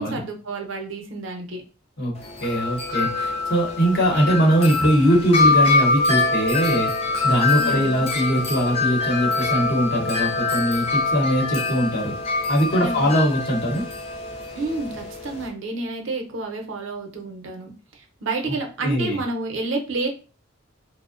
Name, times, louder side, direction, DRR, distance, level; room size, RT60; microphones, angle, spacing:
voice 1, 0.0-1.6 7.6-8.1 12.8-13.2 14.5-17.7 18.2-20.1, right 2 dB, 75° right, 2 dB, 0.6 m, -29 dB
Wind chime, 2.2-15.5, left 3 dB, 30° left, 0.4 m, -24 dB
voice 2, 2.4-6.9 7.2-12.1 12.5-13.8 18.5-18.6 18.8-19.2, equal, 55° left, -1 dB, 0.8 m, -21 dB
2.6 x 2.0 x 2.4 m, 0.35 s
head